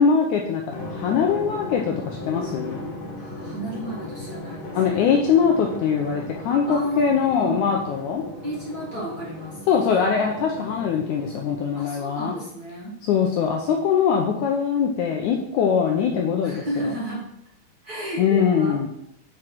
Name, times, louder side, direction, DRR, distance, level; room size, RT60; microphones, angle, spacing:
voice 1, 0.0-2.8 4.7-8.2 9.7-12.3 13.1-16.9 18.2-18.9, left 6 dB, 80° left, 1 dB, 1.8 m, -22 dB
Drum, 0.7-11.7, left 2 dB, 45° left, 2.1 m, -36 dB
voice 2, 3.1-4.8 6.7-7.6 8.4-9.6 11.7-13.0 16.4-17.2 17.8-18.9, right 1 dB, 35° right, -5 dB, 1.7 m, -32 dB
6.0 x 5.0 x 5.9 m, 0.74 s
omnidirectional pair, 4.1 m